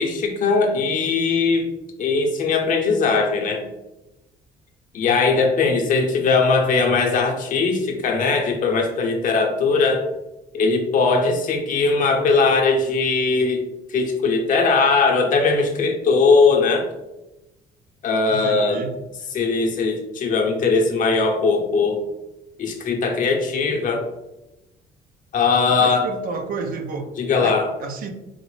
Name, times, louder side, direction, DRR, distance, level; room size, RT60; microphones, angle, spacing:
voice 1, 0.0-1.7 2.0-3.6 4.9-10.0 10.5-13.6 13.9-16.9 18.0-18.8 19.3-22.0 22.6-24.0 25.3-26.1 27.2-27.7, left 4 dB, 50° left, 2 dB, 0.7 m, -19 dB
voice 2, 5.0-5.5 18.3-19.0 25.7-27.1 27.4-28.1, right 4 dB, 60° right, 5 dB, 0.5 m, -31 dB
3.8 x 2.0 x 3.1 m, 0.97 s
cardioid pair, 110°, 17 cm